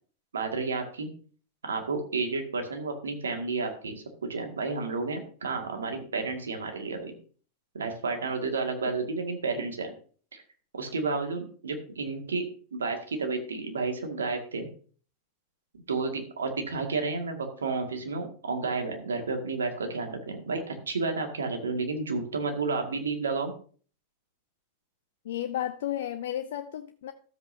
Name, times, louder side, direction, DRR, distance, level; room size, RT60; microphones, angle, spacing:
voice 1, 0.3-1.1 1.6-4.0 4.3-7.1 7.7-9.9 10.3-10.4 10.7-12.4 12.7-14.7 15.9-23.5, right 4 dB, 80° right, 2.0 m, -31 dB
voice 2, 25.2-27.1, left 11 dB, 65° left, 0.5 m, -33 dB
13.5 x 7.9 x 2.7 m
hypercardioid pair, 95°, 0 cm